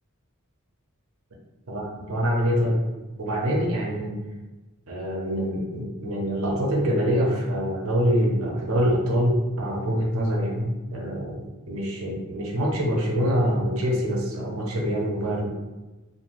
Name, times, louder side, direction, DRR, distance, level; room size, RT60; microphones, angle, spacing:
voice 1, 1.7-2.8 3.2-4.1 4.9-11.4 11.7-15.5, equal, 80° right, -1 dB, 0.6 m, -25 dB
3.1 x 2.5 x 2.5 m, 1.1 s
head